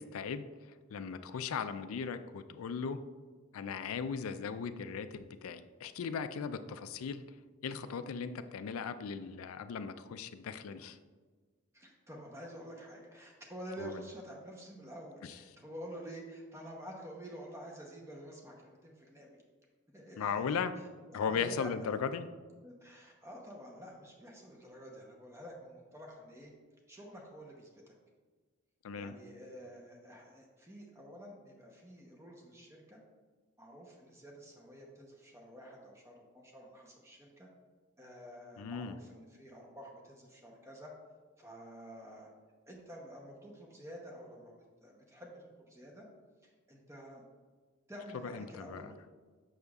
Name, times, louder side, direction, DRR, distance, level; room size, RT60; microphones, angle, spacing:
voice 1, 0.1-0.4 0.9-3.0 3.5-7.2 7.6-11.0 13.8-14.0 20.2-20.7 21.1-22.3 28.8-29.1 38.6-39.0 48.2-48.9, left 6 dB, 85° left, 11 dB, 0.4 m, -37 dB
voice 2, 11.7-19.4 19.9-20.6 21.1-21.7 22.6-26.5 26.9-27.9 29.0-33.0 33.6-37.5 38.0-40.9 41.4-42.3 42.7-46.1 46.4-47.2 47.9-48.9, equal, 15° right, 0 dB, 0.7 m, -49 dB
6.7 x 6.3 x 2.3 m, 1.4 s
head